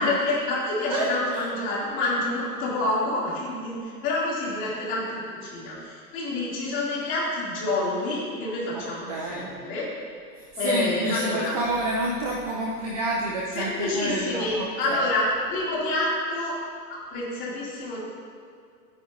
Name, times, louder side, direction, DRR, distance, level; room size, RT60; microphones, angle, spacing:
voice 1, 0.0-9.9 10.6-11.6 13.5-15.2 15.5-16.6 16.9-18.0, left 2 dB, 25° left, -7 dB, 2.8 m, -28 dB
voice 2, 0.9-1.5 8.7-9.5 10.4-15.0, right 1 dB, 25° right, -2 dB, 0.5 m, -29 dB
13.5 x 9.4 x 2.7 m, 2.2 s
hypercardioid pair, 155°, 49 cm